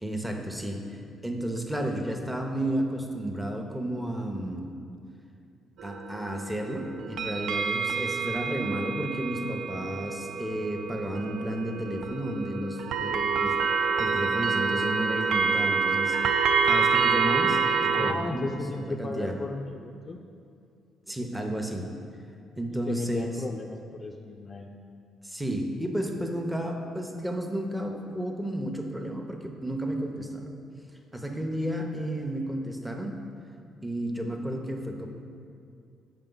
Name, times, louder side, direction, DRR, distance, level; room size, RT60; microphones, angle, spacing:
voice 1, 0.0-4.7 5.8-19.3 21.1-21.9 22.6-23.4 25.2-30.5 31.1-33.2 33.8-35.1, right 1 dB, 10° right, 2 dB, 0.8 m, -32 dB
sound 1, 5.8-18.1, right 5 dB, 70° right, 0.3 m, -27 dB
voice 2, 17.9-20.2 22.7-24.7, left 2 dB, 40° left, 1 dB, 0.4 m, -35 dB
6.6 x 5.2 x 3.9 m, 2.4 s
hypercardioid pair, 55°, 0 cm